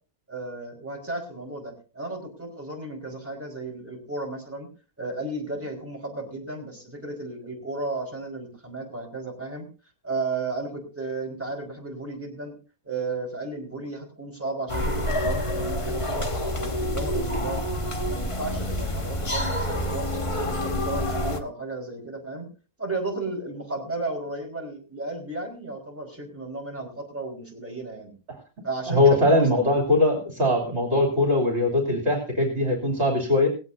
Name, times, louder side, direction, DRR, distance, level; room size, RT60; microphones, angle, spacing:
voice 1, 0.3-4.7 5.0-9.6 10.0-12.5 12.8-17.6 18.1-20.1 20.4-22.4 22.8-28.1 28.6-29.5 30.7-30.8, right 2 dB, 10° right, 0 dB, 4.8 m, -34 dB
sound 1, 14.7-21.4, left 1 dB, 20° left, 1.2 m, -27 dB
voice 2, 28.9-33.5, left 1 dB, 45° right, 1 dB, 3.4 m, -21 dB
19.0 x 16.5 x 2.7 m, 0.35 s
omnidirectional pair, 1.6 m